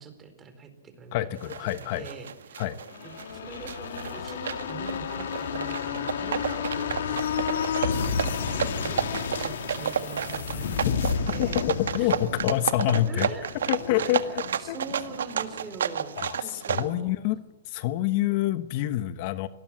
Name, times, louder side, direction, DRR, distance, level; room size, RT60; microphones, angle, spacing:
voice 1, 0.0-2.7 3.0-7.5 7.9-11.6 12.0-12.4 13.1-13.6 13.9-17.1, right 5 dB, 20° right, 8 dB, 4.2 m, -43 dB
voice 2, 1.1-2.1 2.6-2.8 11.4-11.5 11.9-13.3 13.7-14.2 14.7-14.8 16.2-17.4 17.7-19.5, left 14 dB, 45° left, 13 dB, 1.1 m, -27 dB
sound 1, 1.4-16.9, right 8 dB, 80° right, 1.7 m, -31 dB
sound 2, 2.8-16.3 16.6-16.7, left 7 dB, 70° left, 3.2 m, -32 dB
25.0 x 19.5 x 7.5 m, 0.94 s
hypercardioid pair, 140°, 0 cm